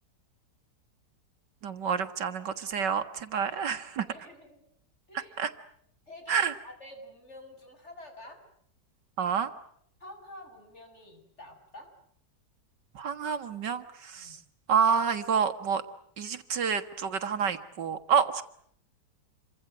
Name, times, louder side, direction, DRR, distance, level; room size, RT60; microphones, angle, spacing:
voice 1, 1.6-4.1 5.1-5.5 6.3-6.5 9.2-9.5 13.0-14.4 14.7-15.8 16.2-18.4, right 7 dB, 75° right, 9 dB, 2.2 m, -28 dB
voice 2, 3.4-4.7 5.1-5.4 6.1-8.4 10.0-11.9 14.1-14.4, left 1 dB, 40° left, 4 dB, 7.9 m, -49 dB
28.0 x 25.0 x 8.0 m, 0.66 s
omnidirectional pair, 1.9 m